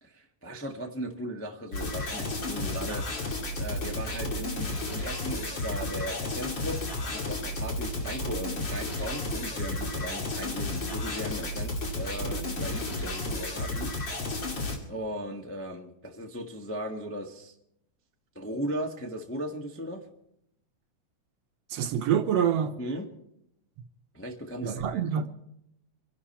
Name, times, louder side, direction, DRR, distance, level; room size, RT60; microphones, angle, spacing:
voice 1, 0.0-6.8 7.1-14.4 14.9-17.5 18.3-20.0 22.8-23.1 24.1-25.0, equal, 15° left, 0.5 m, -37 dB
sound 1, 1.7-14.8, left 2 dB, 40° left, 2.8 m, -32 dB
voice 2, 21.7-22.7 24.6-25.3, right 9 dB, 70° right, 1.9 m, -26 dB
26.5 x 11.5 x 4.4 m
omnidirectional pair, 3.3 m